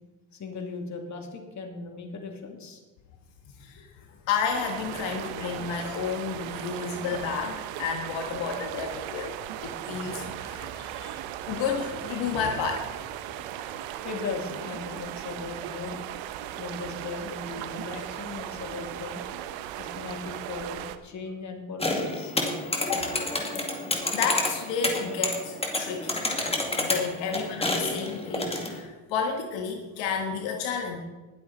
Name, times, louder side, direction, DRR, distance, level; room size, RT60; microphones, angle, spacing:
voice 1, 0.3-2.8 3.8-3.9 4.1-4.2 14.0-19.2 19.7-22.3, left 4 dB, 35° left, 3 dB, 2.7 m, -38 dB
voice 2, 4.2-9.3 9.6-11.2 11.5-12.9 22.8-23.4 24.1-26.2 26.8-31.0, left 6 dB, 70° left, 3 dB, 1.7 m, -31 dB
sound 1, 4.5-21.0, right 11 dB, 75° right, 1.0 m, -37 dB
sound 2, 21.8-28.8, left 2 dB, 15° left, 2.4 m, -29 dB
20.0 x 8.1 x 4.2 m, 1.2 s
supercardioid pair, 95°, 46 cm